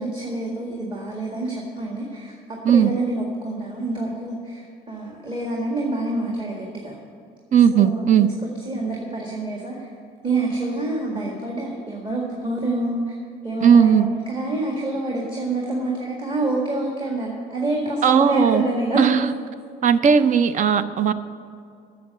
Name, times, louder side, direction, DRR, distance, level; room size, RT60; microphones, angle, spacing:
voice 1, 0.0-7.0 7.7-8.3 8.7-9.9 10.2-13.2 13.4-19.2, right 2 dB, 30° right, -2 dB, 1.8 m, -27 dB
voice 2, 7.5-8.3 13.6-14.1 18.0-18.6 19.0-19.3 19.8-21.1, right 7 dB, 50° right, 12 dB, 0.6 m, -16 dB
8.5 x 6.8 x 8.4 m, 2.4 s
cardioid pair, 110°, 17 cm